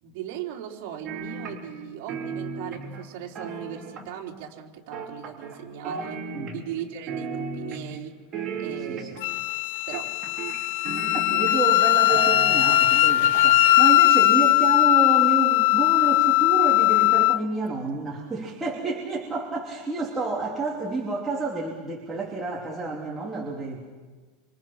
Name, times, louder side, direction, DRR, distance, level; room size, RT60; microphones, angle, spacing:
voice 1, 0.0-6.2 6.5-8.2 8.6-9.4 9.9-10.1, right 9 dB, 55° right, -1 dB, 4.0 m, -38 dB
sound 1, 1.1-1.8 2.1-4.3 4.9-5.6 5.8-6.8 7.1-8.0 8.3-9.3 9.9-11.8 12.1-13.0 13.3-13.4, right 5 dB, 25° right, 4.3 m, -34 dB
voice 2, 6.3-6.6 8.9-9.1 11.1-23.8, right 3 dB, 10° right, -4 dB, 3.0 m, -30 dB
Wind instrument woodwind instrument, 9.2-17.4, left 16 dB, 65° left, 0.7 m, -19 dB
27.0 x 27.0 x 5.9 m, 1.3 s
supercardioid pair, 165°, 0 cm